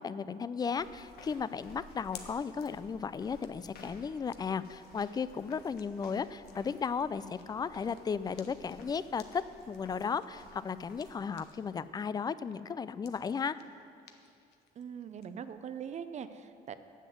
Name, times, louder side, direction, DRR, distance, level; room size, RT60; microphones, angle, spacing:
voice 1, 0.0-13.6, left 6 dB, 25° left, 15 dB, 0.4 m, -35 dB
sound 1, 0.8-11.9, left 2 dB, 65° left, 1.7 m, -56 dB
sound 2, 1.0-11.8 12.1-15.3, left 8 dB, 80° left, 1.0 m, -58 dB
voice 2, 14.8-16.7, right 7 dB, 45° right, 11 dB, 0.6 m, -42 dB
9.9 x 7.7 x 7.8 m, 2.5 s
cardioid pair, 110°, 17 cm